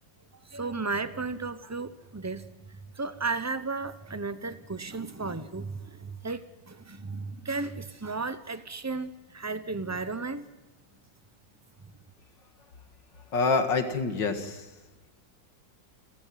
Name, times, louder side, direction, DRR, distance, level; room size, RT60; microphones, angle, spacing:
voice 1, 0.4-10.4, right 3 dB, 15° right, 12 dB, 0.5 m, -34 dB
voice 2, 13.3-14.7, left 4 dB, 85° left, 6 dB, 2.6 m, -26 dB
29.5 x 13.0 x 7.7 m, 1.2 s
omnidirectional pair, 1.9 m